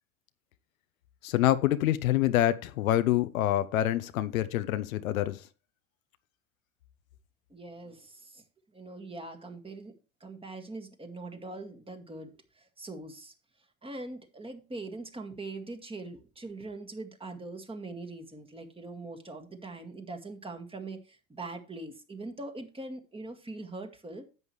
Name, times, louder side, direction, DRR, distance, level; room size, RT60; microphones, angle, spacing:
voice 1, 1.2-5.4, left 13 dB, 80° left, 0.8 m, -26 dB
voice 2, 7.5-8.4 8.7-9.9 10.2-13.3 13.8-24.3, right 2 dB, 15° right, 1.9 m, -42 dB
11.0 x 8.0 x 3.2 m
hypercardioid pair, 95°, 41 cm